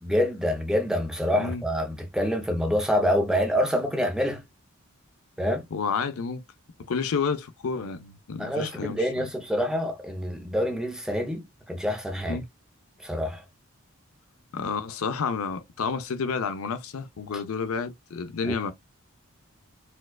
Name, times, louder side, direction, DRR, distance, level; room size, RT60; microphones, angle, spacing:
voice 1, 0.0-4.4 5.4-5.6 8.4-12.4 13.0-13.4 18.4-18.5, equal, 5° right, 0.6 m, -26 dB
voice 2, 5.7-6.4 6.9-9.3 12.3-12.4 14.5-18.7, left 5 dB, 75° left, 0.5 m, -30 dB
4.4 x 2.3 x 2.2 m
head